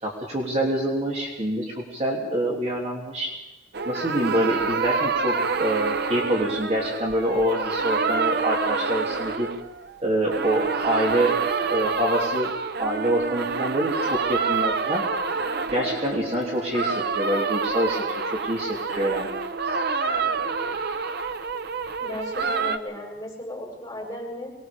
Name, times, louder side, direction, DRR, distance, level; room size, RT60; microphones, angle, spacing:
voice 1, 0.0-3.3 3.8-9.5 10.0-11.3 11.7-12.5 12.8-15.0 15.7-19.3, right 1 dB, 35° right, -2 dB, 3.2 m, -26 dB
sound 1, 3.7-10.0 10.2-22.8, right 4 dB, 60° right, 0.8 m, -27 dB
voice 2, 22.0-24.5, left 1 dB, 15° left, -4 dB, 8.0 m, -35 dB
23.5 x 20.5 x 5.4 m, 1.0 s
head